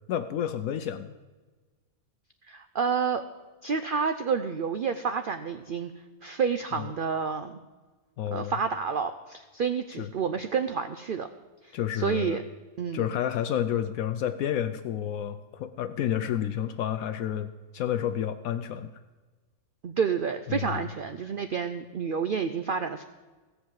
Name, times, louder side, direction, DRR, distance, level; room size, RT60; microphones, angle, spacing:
voice 1, 0.1-1.2 6.8-6.9 8.2-8.5 10.0-10.1 11.7-12.4 12.9-18.9 20.5-20.9, left 10 dB, 75° left, 10 dB, 1.0 m, -30 dB
voice 2, 2.5-3.2 3.6-5.9 6.2-7.6 8.3-11.3 11.6-12.4 12.8-13.0 19.8-23.0, right 6 dB, 75° right, 9 dB, 0.4 m, -29 dB
16.5 x 5.6 x 7.5 m, 1.3 s
omnidirectional pair, 1.6 m